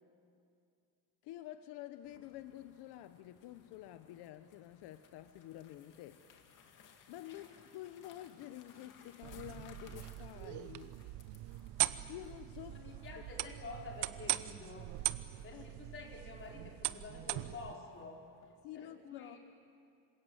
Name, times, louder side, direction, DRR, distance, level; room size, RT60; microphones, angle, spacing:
voice 1, 1.2-6.2 7.1-11.0 12.1-12.7 15.5-15.7 18.6-19.4, left 13 dB, 80° left, 10 dB, 1.1 m, -49 dB
sound 1, 2.0-18.5, left 7 dB, 50° left, 2.5 m, -64 dB
sound 2, 9.2-17.7, right 16 dB, 80° right, 1.0 m, -40 dB
voice 2, 12.7-14.9 15.4-18.2 18.7-19.4, left 3 dB, 30° left, -1 dB, 4.8 m, -49 dB
27.0 x 26.5 x 7.9 m, 2.4 s
cardioid pair, 165°, 40 cm